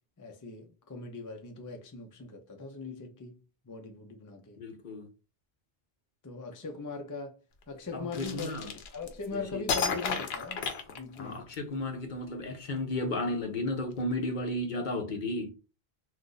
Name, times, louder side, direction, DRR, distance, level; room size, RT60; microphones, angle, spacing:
voice 1, 0.2-4.6 6.2-7.4 7.7-8.5 8.9-10.6 10.9-11.5, left 3 dB, 25° left, 0.4 m, -40 dB
voice 2, 4.6-5.1 7.9-8.7 9.3-9.6 11.2-15.5, left 1 dB, 55° left, 0.7 m, -33 dB
sound 1, 8.1-9.3 9.7-11.5, left 5 dB, 85° left, 0.9 m, -32 dB
2.5 x 2.5 x 3.8 m
omnidirectional pair, 1.0 m